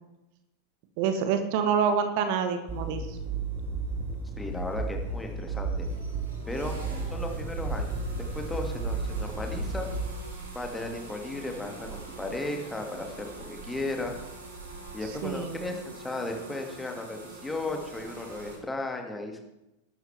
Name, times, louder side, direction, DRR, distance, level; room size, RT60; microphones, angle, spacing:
voice 1, 1.0-3.2 15.2-15.8, right 6 dB, 45° right, 8 dB, 1.4 m, -27 dB
sound 1, 2.7-10.1, right 3 dB, 20° right, 2.4 m, -33 dB
sound 2, 2.7-18.6, right 3 dB, 70° right, 4.3 m, -43 dB
voice 2, 4.4-5.9 6.5-6.7 7.1-9.9 10.5-14.2 14.9-19.4, left 2 dB, 10° left, 3 dB, 2.3 m, -35 dB
20.5 x 12.0 x 3.5 m, 0.94 s
figure-of-eight pair, 90°, 0 cm